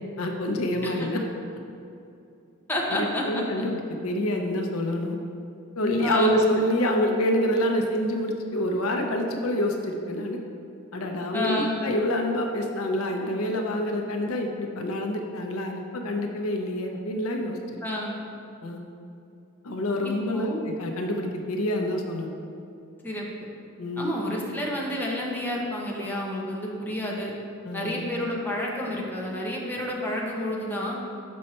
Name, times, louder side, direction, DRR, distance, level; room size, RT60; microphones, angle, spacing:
voice 1, 0.2-1.2 1.5-1.6 2.9-5.2 5.8-10.4 10.9-17.8 18.6-18.8 19.6-20.5 20.8-22.3 23.8-24.1 27.6-28.0, left 1 dB, 80° left, 3 dB, 0.7 m, -27 dB
voice 2, 2.7-3.4 6.0-6.4 11.3-11.8 17.8-18.2 20.0-20.6 23.0-23.3 24.0-27.3 27.7-31.0, left 1 dB, 10° left, -3 dB, 0.9 m, -29 dB
6.4 x 5.5 x 4.2 m, 2.6 s
head